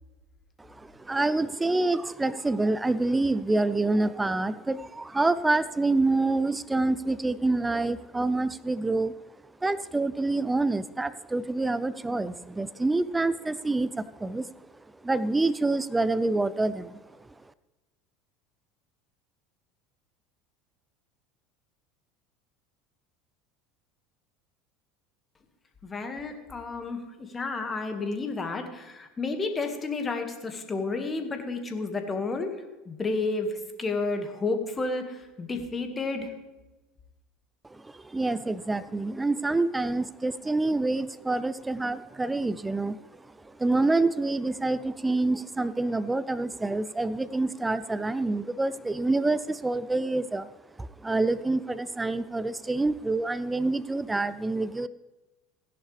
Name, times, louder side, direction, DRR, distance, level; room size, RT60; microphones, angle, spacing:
voice 1, 0.6-9.1 9.6-14.5 15.0-17.0 37.7-43.0 43.4-50.5 50.8-54.9, right 2 dB, 15° right, 17 dB, 0.4 m, -27 dB
voice 2, 25.8-36.3, left 3 dB, 25° left, 5 dB, 1.9 m, -31 dB
16.0 x 11.0 x 3.4 m, 1.1 s
hypercardioid pair, 75°, 0 cm